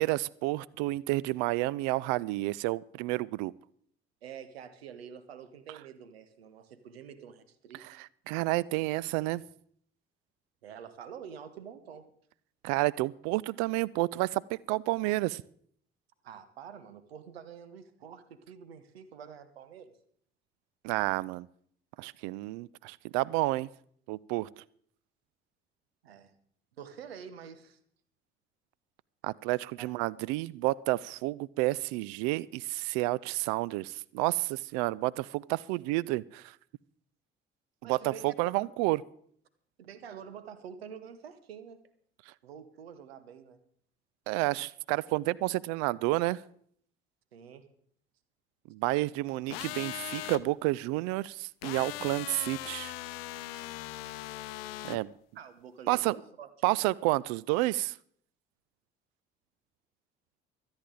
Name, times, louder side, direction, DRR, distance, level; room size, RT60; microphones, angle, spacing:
voice 1, 0.0-3.5 7.8-9.4 12.6-15.4 20.8-21.5 22.0-23.7 24.1-24.5 29.2-36.5 37.8-39.0 44.3-46.4 48.7-52.9 54.8-55.1 55.9-56.1 56.6-58.0, right 19 dB, 60° right, 0.4 m, -30 dB
voice 2, 4.2-7.8 10.6-12.1 16.2-19.9 26.0-26.3 26.8-27.8 29.8-29.9 37.8-38.7 39.8-41.8 42.4-43.6 47.3-47.7 55.3-56.8, right 7 dB, 80° right, 1.1 m, -47 dB
sound 1, 49.5-50.4 51.6-55.0, left 16 dB, 70° left, 0.6 m, -39 dB
24.5 x 8.8 x 3.8 m
figure-of-eight pair, 45°, 30 cm